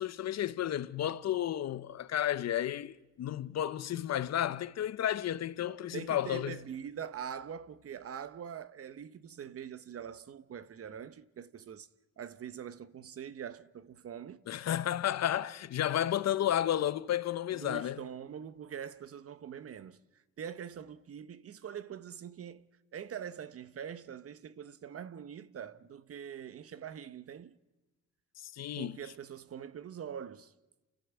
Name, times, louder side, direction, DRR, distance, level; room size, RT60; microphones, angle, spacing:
voice 1, 0.0-6.6 14.5-18.0 28.4-29.0, left 11 dB, 60° left, 0.8 m, -32 dB
voice 2, 5.7-11.9 12.2-14.5 17.5-20.0 20.4-22.7 22.9-27.6 28.8-30.5, right 8 dB, 50° right, 1.0 m, -44 dB
29.0 x 14.0 x 8.2 m
cardioid pair, 90°, 30 cm